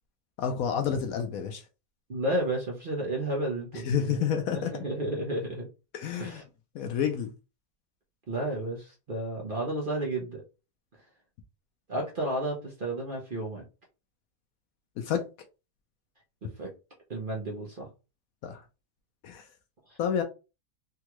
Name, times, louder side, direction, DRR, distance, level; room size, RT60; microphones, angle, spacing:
voice 1, 0.4-1.6 3.8-4.8 5.9-6.4 6.7-7.3 15.0-15.3 18.4-18.6 19.2-19.5 20.0-20.2, left 8 dB, 70° left, 0.9 m, -29 dB
voice 2, 2.1-4.2 4.7-5.7 6.2-6.4 8.3-10.4 11.9-13.6 16.4-16.7 17.1-17.9 19.9-20.0, right 1 dB, 45° right, 0.8 m, -32 dB
3.6 x 2.3 x 2.9 m
omnidirectional pair, 1.7 m